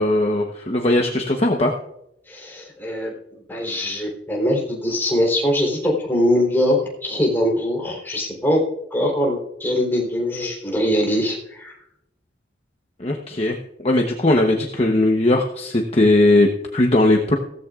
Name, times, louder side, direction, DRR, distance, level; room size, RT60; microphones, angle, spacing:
voice 1, 0.0-1.7 13.0-13.6 13.8-17.3, left 1 dB, 35° left, 2 dB, 0.9 m, -18 dB
voice 2, 2.3-3.1 3.5-8.6 8.9-11.7, left 1 dB, 10° left, -2 dB, 3.6 m, -22 dB
16.5 x 14.0 x 2.4 m, 0.79 s
head